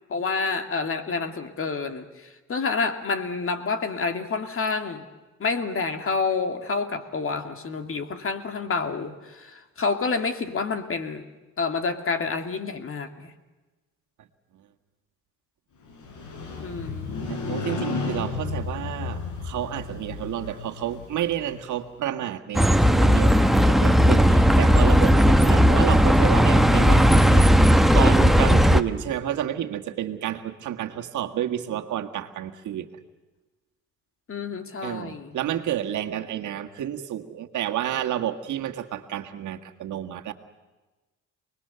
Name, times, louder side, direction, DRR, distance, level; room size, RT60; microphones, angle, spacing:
voice 1, 0.1-5.0 5.4-11.3 11.6-13.3 16.6-17.2 34.3-35.4, left 4 dB, 45° left, 8 dB, 2.3 m, -28 dB
Motorcycle, 15.9-21.8, left 4 dB, 80° left, 5.0 m, -33 dB
voice 2, 17.3-32.9 34.8-40.3, right 11 dB, 75° right, 4 dB, 1.8 m, -30 dB
Bus, 22.5-28.8, equal, ahead, 1.1 m, -16 dB
28.5 x 20.5 x 6.9 m, 1.2 s
cardioid pair, 90°, 30 cm